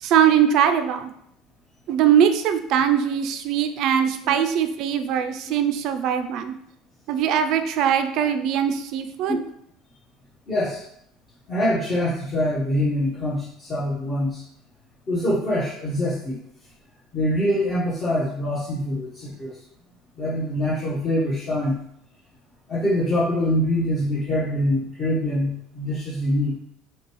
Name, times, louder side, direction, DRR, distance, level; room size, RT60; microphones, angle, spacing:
voice 1, 0.0-1.1 1.9-6.5 7.1-9.4, right 9 dB, 60° right, 8 dB, 0.4 m, -21 dB
voice 2, 10.5-10.8 11.5-14.4 15.1-16.4 17.1-19.5 20.2-21.8 22.7-26.5, left 1 dB, 35° left, -8 dB, 1.1 m, -24 dB
6.1 x 2.3 x 3.1 m, 0.72 s
supercardioid pair, 120°, 0 cm